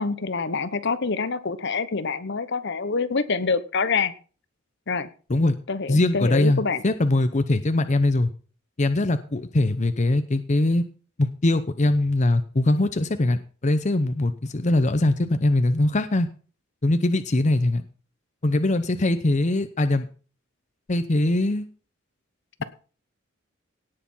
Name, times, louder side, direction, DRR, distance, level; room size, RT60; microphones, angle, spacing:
voice 1, 0.0-4.1 4.9-5.1 5.7-6.8, left 4 dB, 60° left, 14 dB, 1.0 m, -26 dB
voice 2, 5.9-8.3 8.8-10.8 11.2-16.3 16.8-17.8 18.4-20.1 20.9-21.7, left 2 dB, 35° left, 10 dB, 0.7 m, -22 dB
17.5 x 6.8 x 5.6 m, 0.39 s
head